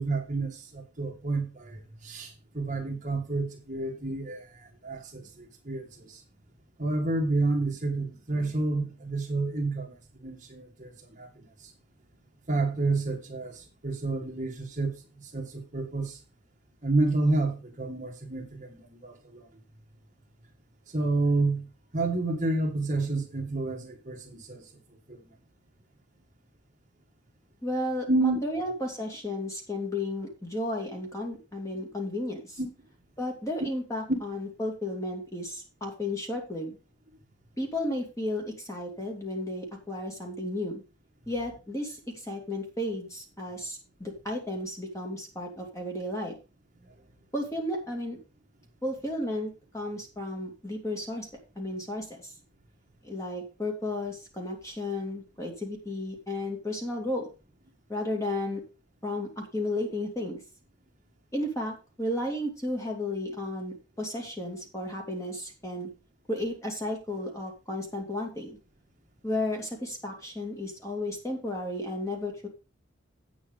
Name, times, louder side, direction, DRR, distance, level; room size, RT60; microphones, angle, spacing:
voice 1, 0.0-6.2 6.8-9.9 10.2-11.4 12.5-16.2 16.8-19.5 20.9-21.7 21.9-24.6 25.1-25.3 28.1-28.4 32.6-32.7, right 2 dB, 40° right, 2 dB, 1.8 m, -29 dB
voice 2, 27.6-32.6 33.2-36.8 37.6-40.8 41.3-46.3 47.3-48.2 48.8-51.3 51.6-52.3 53.0-57.3 57.9-58.6 59.0-60.4 61.3-65.9 66.3-68.6 69.2-72.5, left 1 dB, 15° left, 1 dB, 2.4 m, -33 dB
8.6 x 7.3 x 5.1 m, 0.32 s
head